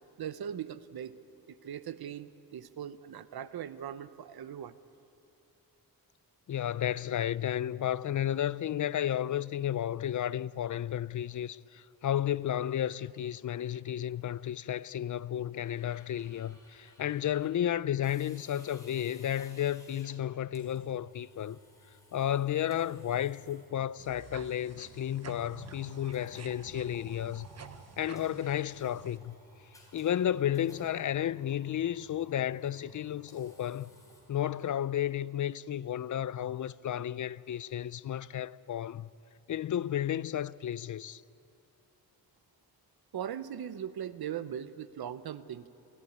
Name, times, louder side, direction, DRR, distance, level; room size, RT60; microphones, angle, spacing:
voice 1, 0.2-1.2 1.6-4.8 43.1-45.7, right 9 dB, 80° right, 0.9 m, -39 dB
voice 2, 6.5-21.6 22.1-27.5 28.0-29.4 29.9-33.9 34.3-39.1 39.5-41.2, left 10 dB, 55° left, 0.5 m, -32 dB
sound 1, 15.6-34.7, left 1 dB, 10° left, 4.4 m, -59 dB
sound 2, 24.0-29.2, right 6 dB, 45° right, 1.0 m, -50 dB
28.5 x 15.0 x 9.4 m
wide cardioid pair, 150°, 36 cm